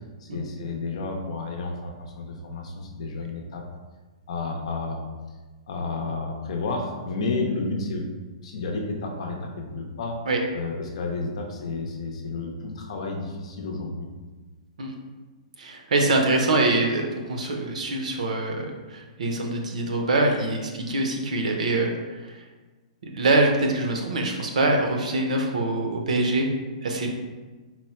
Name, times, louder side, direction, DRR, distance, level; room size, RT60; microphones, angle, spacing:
voice 1, 0.2-3.6 4.3-5.1 5.7-8.0 8.4-10.2 10.5-14.1, left 3 dB, 60° left, 1 dB, 0.7 m, -31 dB
voice 2, 15.6-21.9 22.3-22.4 23.1-26.5 26.8-27.1, right 2 dB, 85° right, 2 dB, 0.8 m, -24 dB
4.3 x 2.1 x 4.3 m, 1.3 s
hypercardioid pair, 170°, 4 cm